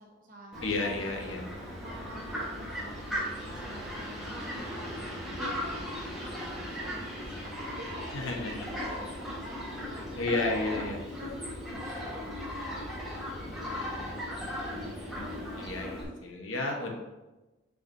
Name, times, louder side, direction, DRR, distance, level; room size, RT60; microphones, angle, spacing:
voice 1, 0.0-0.7 1.0-4.7 5.4-10.5 11.0-14.2 14.6-16.2, equal, 45° right, 0 dB, 1.2 m, -49 dB
Fowl, 0.5-16.0, equal, ahead, 1.4 m, -37 dB
voice 2, 0.6-1.4 8.1-8.7 10.2-11.1 15.2-16.9, left 2 dB, 85° left, 1 dB, 1.2 m, -32 dB
7.5 x 4.9 x 2.7 m, 1.1 s
head